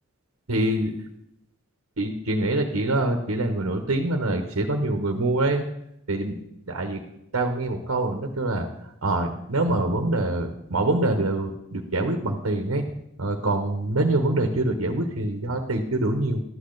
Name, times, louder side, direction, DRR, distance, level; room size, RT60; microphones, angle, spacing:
voice 1, 0.5-0.9 2.0-5.6 6.1-6.4 6.7-7.0 7.3-8.7 9.0-12.9 13.2-16.4, right 2 dB, 85° right, 5 dB, 1.2 m, -25 dB
12.5 x 8.8 x 4.0 m, 0.79 s
head